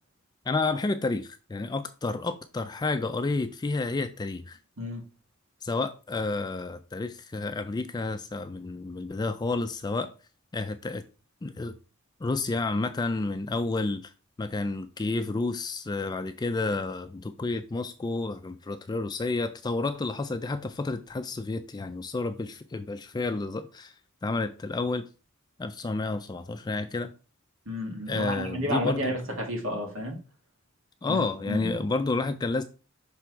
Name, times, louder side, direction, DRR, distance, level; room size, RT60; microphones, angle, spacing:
voice 1, 0.5-4.6 5.6-10.1 10.5-11.0 11.4-11.7 12.2-14.1 14.4-23.9 24.2-25.0 25.6-27.1 28.1-29.1 31.0-32.6, left 3 dB, 20° left, 0.3 m, -30 dB
voice 2, 27.7-30.2 31.0-31.8, left 1 dB, 80° right, 2.1 m, -31 dB
6.0 x 3.4 x 4.6 m
head